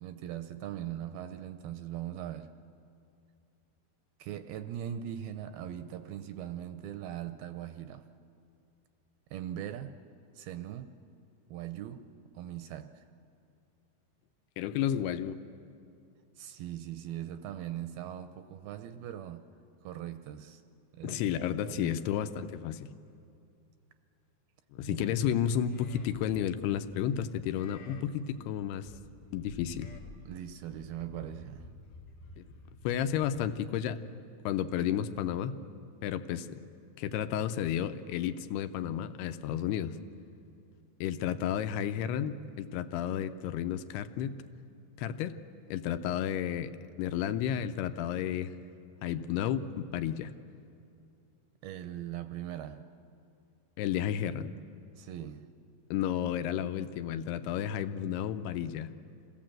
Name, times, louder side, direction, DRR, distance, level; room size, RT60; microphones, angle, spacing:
voice 1, 0.0-2.5 4.2-8.1 9.3-10.0 10.4-10.9 11.5-12.1 12.4-13.0 16.4-19.5 19.8-20.6 20.9-21.3 21.6-22.0 24.9-25.2 30.3-31.7 51.6-52.9 55.0-55.5, right 11 dB, 80° right, 2.3 m, -40 dB
voice 2, 14.6-15.4 21.0-22.9 24.7-28.9 29.3-29.9 32.4-32.5 32.8-35.5 36.0-36.6 37.0-40.0 41.0-44.4 45.0-45.4 45.7-46.7 47.0-48.5 49.0-50.3 53.8-54.5 55.9-58.9, left 10 dB, 80° left, 2.7 m, -32 dB
Livestock farm animals working animals, 25.7-33.5, left 3 dB, 45° left, 1.9 m, -52 dB
27.0 x 17.0 x 7.6 m
omnidirectional pair, 4.7 m